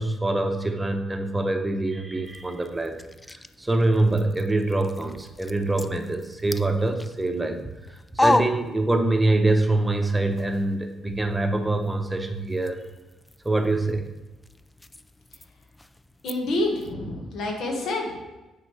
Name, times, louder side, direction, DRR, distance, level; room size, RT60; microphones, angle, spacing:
voice 1, 0.0-3.0 3.6-7.6 7.9-12.8 13.4-14.0, right 2 dB, 15° right, 6 dB, 0.8 m, -24 dB
sound 1, 2.2-9.4 9.7-16.9, left 2 dB, 15° left, 0.3 m, -34 dB
voice 2, 16.2-18.2, left 2 dB, 75° left, 1 dB, 1.5 m, -28 dB
9.3 x 4.8 x 3.2 m, 1.1 s
cardioid pair, 90°, 0 cm